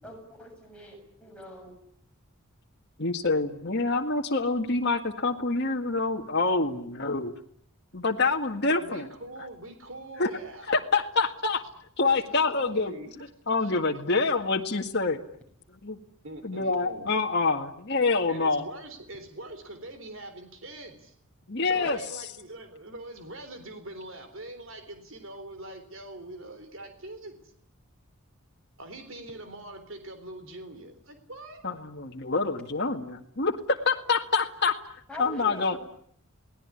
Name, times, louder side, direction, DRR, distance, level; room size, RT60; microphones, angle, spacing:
voice 1, 0.0-1.8 21.7-21.8 35.1-35.8, left 1 dB, 5° left, 0 dB, 7.0 m, -44 dB
voice 2, 3.0-7.3 7.9-9.1 10.2-10.3 10.7-11.6 12.0-12.9 13.5-15.2 16.4-18.7 21.5-22.0 31.6-34.8 35.2-35.8, left 3 dB, 50° left, 2 dB, 1.9 m, -26 dB
voice 3, 8.7-10.8 12.0-13.1 13.5-13.7 16.2-17.1 18.3-21.1 21.6-27.4 28.8-31.7, right 1 dB, 60° right, 8 dB, 3.8 m, -43 dB
28.5 x 19.0 x 9.9 m, 0.67 s
head